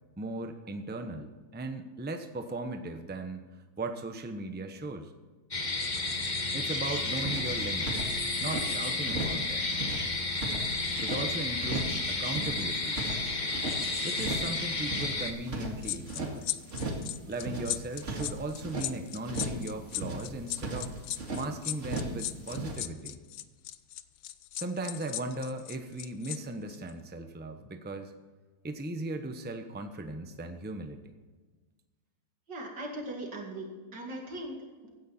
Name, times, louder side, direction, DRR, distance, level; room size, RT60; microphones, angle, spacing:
voice 1, 0.2-3.5 3.8-5.1 6.5-8.1 8.4-9.7 11.0-13.0 14.0-16.4 17.3-20.9 21.3-23.2 24.5-28.1 28.6-31.1, right 2 dB, 10° right, 7 dB, 0.7 m, -37 dB
sound 1, 5.5-15.3, left 3 dB, 30° left, 1.4 m, -32 dB
sound 2, 6.9-7.0 7.1-8.7 9.0-9.4 9.7-11.2 11.6-12.0 12.2-13.8 14.1-14.5 14.8-16.3 16.7-17.1 17.3-18.9 19.2-19.7 19.9-21.4 21.8-22.2 22.5-22.8, right 2 dB, 45° right, 2.4 m, -36 dB
sound 3, 15.8-26.4 26.7-26.9, left 13 dB, 70° left, 1.1 m, -37 dB
voice 2, 32.5-34.9, right 1 dB, 90° right, 1 dB, 3.2 m, -39 dB
16.0 x 10.5 x 4.4 m, 1.3 s
omnidirectional pair, 1.8 m